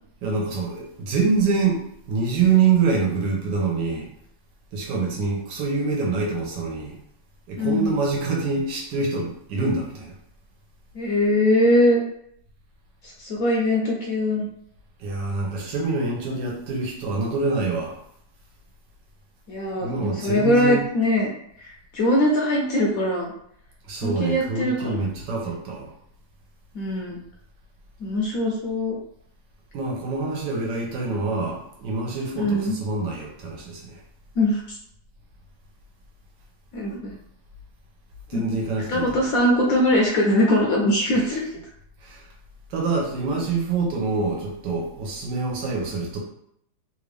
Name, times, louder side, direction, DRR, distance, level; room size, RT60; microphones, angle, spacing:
voice 1, 0.2-4.1 4.7-7.0 7.5-10.1 15.0-18.0 19.8-20.8 23.8-25.9 29.7-34.0 38.3-39.2 42.0-42.2 42.7-46.2, right 4 dB, 80° right, -1 dB, 1.5 m, -25 dB
voice 2, 7.6-7.9 10.9-12.0 13.0-14.5 19.5-21.3 21.6-23.3 24.0-25.1 25.4-25.5 26.7-27.2 28.0-29.0 32.3-32.8 34.4-34.8 36.7-37.1 38.3-41.5, left 1 dB, 70° left, -1 dB, 0.9 m, -22 dB
3.3 x 2.5 x 3.3 m, 0.71 s
omnidirectional pair, 1.9 m